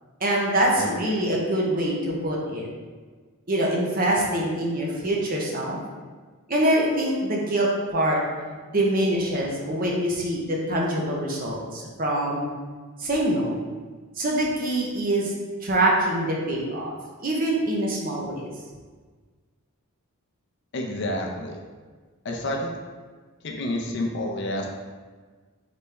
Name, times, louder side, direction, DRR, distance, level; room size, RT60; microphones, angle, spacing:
voice 1, 0.2-2.7 3.5-5.8 6.5-8.2 8.7-12.5 13.0-13.5 14.2-15.3 15.6-16.9 17.2-18.5, right 1 dB, 40° right, -2 dB, 0.7 m, -24 dB
voice 2, 20.7-21.6 22.2-22.7 23.4-24.7, left 1 dB, 50° left, 0 dB, 0.6 m, -29 dB
4.1 x 3.3 x 3.3 m, 1.4 s
head